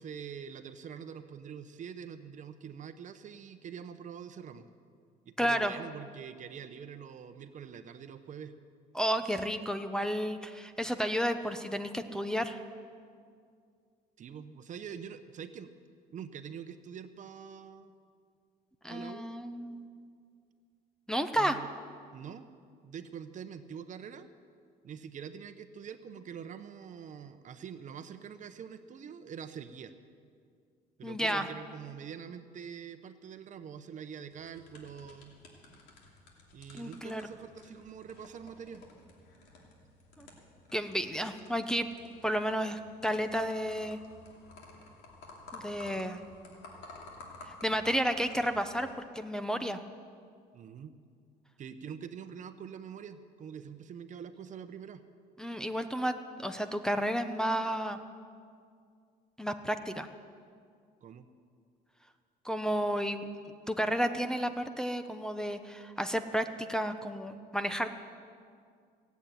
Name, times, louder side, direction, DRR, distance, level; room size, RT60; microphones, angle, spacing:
voice 1, 0.0-4.7 5.3-8.5 14.2-15.7 16.1-17.9 18.9-19.2 21.4-21.7 22.1-22.5 22.8-24.3 24.8-29.9 31.0-35.3 36.5-38.8 50.5-50.9 51.6-55.0 61.0-61.3, right 7 dB, 45° right, 10 dB, 0.9 m, -45 dB
voice 2, 5.4-5.7 8.9-12.6 18.8-19.9 21.1-21.6 31.0-31.5 36.7-37.2 40.2-40.3 40.7-41.9 42.2-44.0 45.5-46.2 47.5-48.9 49.1-49.8 55.4-58.0 59.4-60.1 62.4-63.3 63.7-67.9, equal, 5° left, 6 dB, 0.7 m, -32 dB
sound 1, 34.3-48.9, left 2 dB, 90° left, 2.7 m, -53 dB
17.0 x 8.3 x 8.9 m, 2.2 s
cardioid pair, 110°, 17 cm